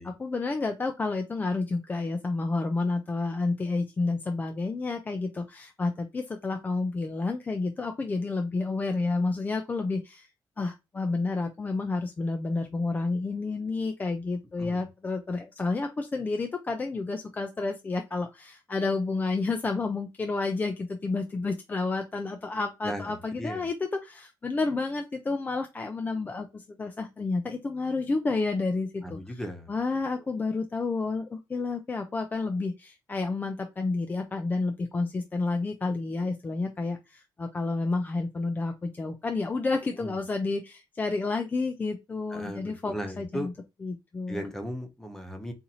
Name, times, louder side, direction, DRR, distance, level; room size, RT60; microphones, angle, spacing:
voice 1, 0.0-10.3 10.6-23.7 24.0-29.4 29.7-43.5 43.8-44.4, left 3 dB, 20° left, 5 dB, 0.3 m, -30 dB
voice 2, 22.8-23.7 29.0-29.7 40.0-40.2 42.3-43.5 44.3-45.5, equal, 5° left, 4 dB, 0.8 m, -37 dB
4.0 x 2.6 x 2.8 m, 0.24 s
cardioid pair, 140°, 8 cm